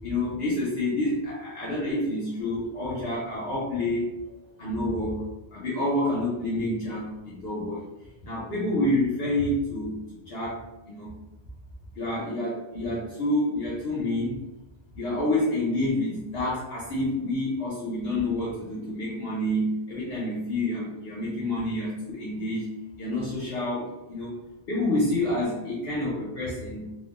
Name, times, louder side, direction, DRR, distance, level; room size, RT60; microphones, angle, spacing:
voice 1, 0.0-4.0 4.6-5.3 5.5-7.8 8.2-10.6 10.9-11.1 11.9-14.4 14.9-22.7 23.0-24.3 24.7-26.9, left 1 dB, 60° left, -7 dB, 0.9 m, -28 dB
3.2 x 2.1 x 2.4 m, 0.93 s
omnidirectional pair, 1.2 m